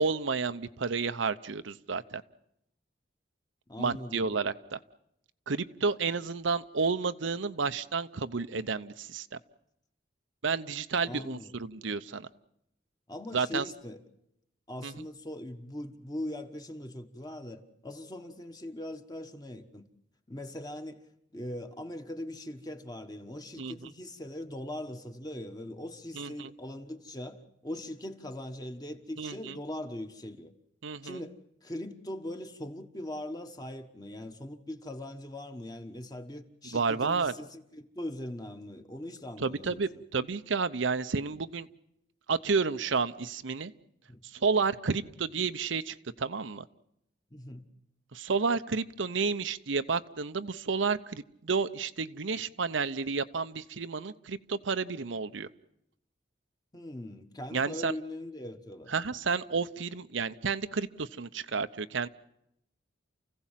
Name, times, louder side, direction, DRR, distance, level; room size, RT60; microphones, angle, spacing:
voice 1, 0.0-2.2 3.8-4.8 5.5-9.4 10.4-12.3 13.3-13.6 14.8-15.0 23.6-23.7 26.2-26.5 29.2-29.5 30.8-31.2 36.7-37.3 39.4-41.7 42.3-43.7 44.2-46.6 48.1-55.5 57.5-57.9 58.9-62.1, right 4 dB, 85° right, 0.8 m, -31 dB
voice 2, 3.7-4.3 11.0-11.6 13.1-14.0 14.7-19.9 20.3-21.1 21.3-30.5 31.0-40.0 44.1-44.2 47.3-47.7 56.7-58.9, left 1 dB, 20° left, 1.4 m, -41 dB
29.0 x 16.0 x 7.5 m
head